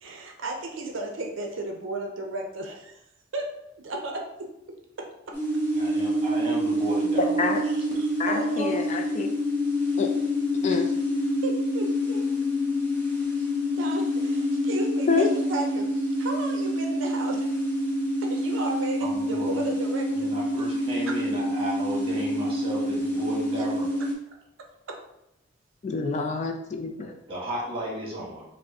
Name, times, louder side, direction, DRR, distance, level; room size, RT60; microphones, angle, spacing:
voice 1, 0.0-3.0 3.3-5.4 7.7-8.9 10.7-10.8 11.4-12.3 13.4-13.5 13.8-17.5 18.2-20.3 21.1-21.2 23.6-23.7 24.9-25.0, right 2 dB, 70° right, 2 dB, 0.5 m, -34 dB
sound 1, 5.3-24.1, equal, 10° left, 0.8 m, -27 dB
voice 2, 5.7-7.4 19.0-19.5 20.1-23.9 27.0-28.4, right 1 dB, 30° right, -4 dB, 1.2 m, -34 dB
voice 3, 8.2-9.3 10.0-10.1 10.6-10.9 15.1-15.3 25.8-27.1, left 4 dB, 35° left, 3 dB, 0.3 m, -27 dB
5.6 x 2.1 x 2.7 m, 0.84 s
head